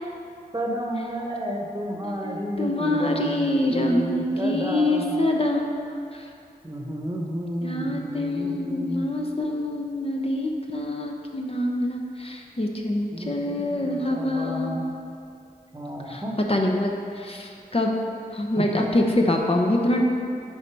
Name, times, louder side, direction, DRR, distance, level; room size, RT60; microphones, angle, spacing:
voice 1, 0.5-5.2 6.6-9.1 13.1-14.9 15.7-16.4 18.6-18.7, equal, 25° right, 0 dB, 1.0 m, -31 dB
voice 2, 2.2-5.7 6.1-6.3 7.6-14.8 16.1-16.2 16.5-17.9 18.3-20.0, left 1 dB, 35° left, 1 dB, 0.7 m, -25 dB
9.9 x 4.0 x 4.6 m, 2.5 s
wide cardioid pair, 65°, 16 cm